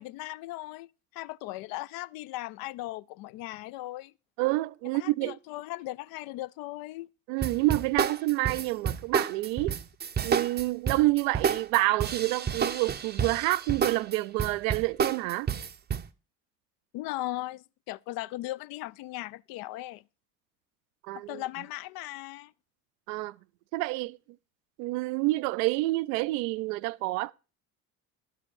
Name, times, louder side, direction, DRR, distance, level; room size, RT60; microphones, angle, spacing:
voice 1, 0.0-4.1 4.9-7.1 16.9-20.0 21.3-22.5, left 17 dB, 50° left, 0.4 m, -38 dB
voice 2, 4.4-5.4 7.3-9.8 10.2-15.5 21.1-21.4 23.1-23.3 23.7-24.2 24.8-27.3, right 20 dB, 60° right, 0.5 m, -28 dB
sound 1, 7.4-16.1, right 7 dB, 20° right, 0.6 m, -30 dB
12.0 x 5.5 x 7.0 m
hypercardioid pair, 60°, 47 cm